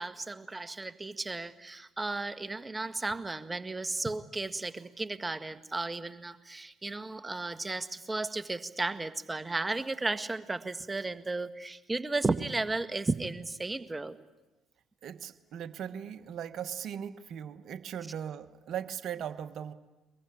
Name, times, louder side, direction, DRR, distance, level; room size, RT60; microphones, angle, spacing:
voice 1, 0.0-14.2, right 3 dB, 20° right, 11 dB, 1.6 m, -34 dB
voice 2, 15.0-19.7, right 9 dB, 55° right, 11 dB, 1.2 m, -39 dB
23.5 x 22.0 x 10.0 m, 1.1 s
figure-of-eight pair, 50°, 0 cm